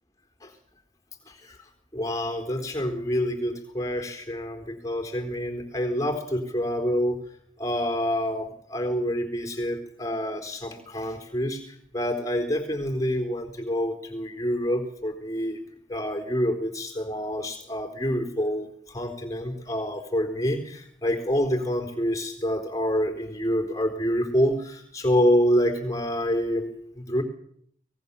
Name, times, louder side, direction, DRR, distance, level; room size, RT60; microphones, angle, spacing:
voice 1, 1.9-7.2 7.6-11.6 11.9-15.6 15.9-18.7 18.9-26.7 27.0-27.2, equal, 15° left, 4 dB, 3.9 m, -27 dB
24.0 x 19.0 x 6.9 m, 0.65 s
head